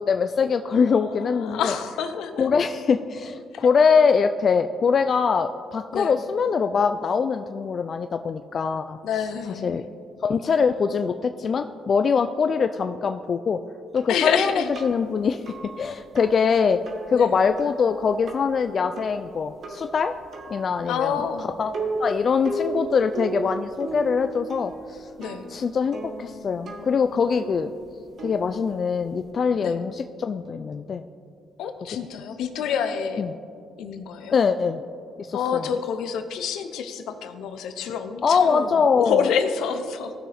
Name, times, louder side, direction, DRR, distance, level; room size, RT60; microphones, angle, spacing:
voice 1, 0.0-1.7 2.4-9.0 9.6-9.9 10.2-13.6 13.9-16.8 17.1-20.1 20.5-21.2 21.6-21.7 22.0-25.1 25.5-27.7 28.2-31.0 33.2-33.3 34.3-34.8 35.2-35.7 38.2-39.2, left 5 dB, 50° left, 8 dB, 0.3 m, -23 dB
voice 2, 0.7-2.5 3.5-3.7 5.9-6.2 9.0-9.9 14.1-14.7 17.1-17.4 20.9-21.5 25.2-25.5 29.6-29.8 31.6-33.2 33.8-34.4 35.3-40.1, left 7 dB, 85° left, 9 dB, 0.7 m, -28 dB
sound 1, 14.0-29.3, right 2 dB, 60° right, 1.4 m, -37 dB
16.0 x 6.2 x 3.4 m, 2.5 s
cardioid pair, 90°, 0 cm